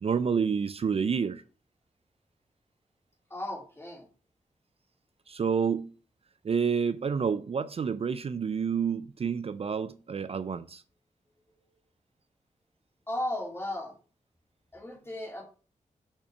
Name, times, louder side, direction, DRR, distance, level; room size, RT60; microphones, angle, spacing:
voice 1, 0.0-1.4 5.3-5.9 6.4-10.8, right 6 dB, 50° right, 0.4 m, -29 dB
voice 2, 3.3-4.1 13.1-13.9 14.7-15.4, left 1 dB, 20° left, 3.0 m, -35 dB
6.6 x 5.8 x 6.8 m
wide cardioid pair, 140°, 13 cm